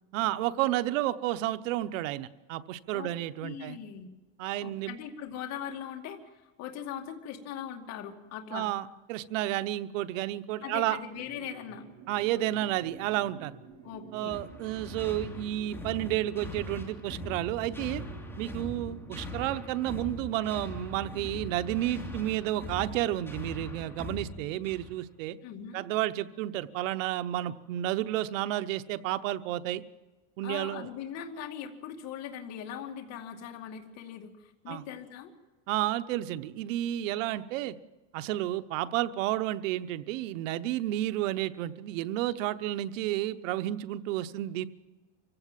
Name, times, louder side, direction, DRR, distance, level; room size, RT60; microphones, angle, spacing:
voice 1, 0.1-3.8 4.4-5.0 8.5-11.0 12.1-13.6 14.1-18.0 18.4-25.4 25.7-29.8 30.4-30.9 34.7-34.8 35.7-37.7 38.1-44.7, right 14 dB, 80° right, 12 dB, 1.1 m, -31 dB
voice 2, 3.4-4.1 4.6-8.7 10.6-11.8 13.8-14.3 25.4-25.9 30.4-35.3, left 9 dB, 45° left, 3 dB, 2.4 m, -40 dB
sound 1, 11.1-19.7, right 5 dB, 45° right, 4.2 m, -52 dB
sound 2, 14.3-25.0, left 1 dB, 5° left, 2.7 m, -41 dB
25.0 x 16.0 x 7.5 m, 1.2 s
cardioid pair, 155°, 38 cm